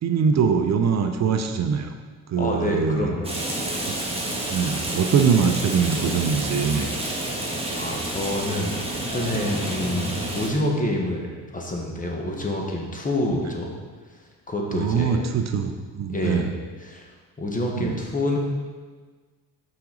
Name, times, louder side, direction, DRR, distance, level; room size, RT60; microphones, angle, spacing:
voice 1, 0.0-1.9 2.3-3.1 3.9-4.0 4.5-6.9 14.7-16.5 17.7-18.0, right 6 dB, 45° right, 6 dB, 0.6 m, -23 dB
voice 2, 2.4-3.3 7.7-13.7 14.5-15.3 16.1-16.5 16.8-17.1 17.4-18.4, left 1 dB, 20° left, 0 dB, 1.2 m, -27 dB
Rain, 3.2-10.5, right 1 dB, 15° right, 1.4 m, -29 dB
5.8 x 5.1 x 3.8 m, 1.4 s
supercardioid pair, 75°, 37 cm